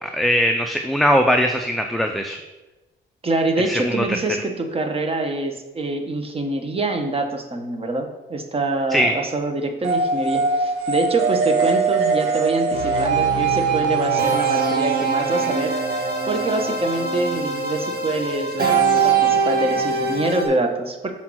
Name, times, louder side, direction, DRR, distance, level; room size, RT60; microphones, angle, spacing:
voice 1, 0.0-2.4 3.7-4.0 8.9-9.1, equal, ahead, 4 dB, 0.5 m, -20 dB
voice 2, 3.2-15.7 16.3-21.1, right 2 dB, 30° right, 5 dB, 1.1 m, -25 dB
sound 1, 9.8-17.3, right 5 dB, 90° right, 0.9 m, -23 dB
sound 2, 12.7-20.5, right 4 dB, 50° right, 1.8 m, -24 dB
5.8 x 4.3 x 6.2 m, 1.1 s
cardioid pair, 90°, 20 cm